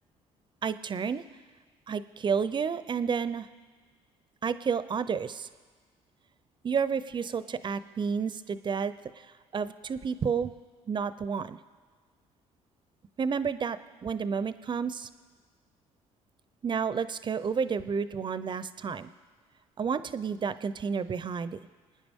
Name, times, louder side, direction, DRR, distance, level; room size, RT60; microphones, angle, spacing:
voice 1, 0.6-1.2 1.9-3.5 4.4-5.5 6.6-8.9 9.5-10.5 10.9-11.6 13.2-13.8 14.0-15.1 16.6-19.1 19.8-21.6, right 6 dB, 40° right, 13 dB, 0.7 m, -30 dB
25.0 x 9.5 x 3.7 m, 1.5 s
supercardioid pair, 75°, 13 cm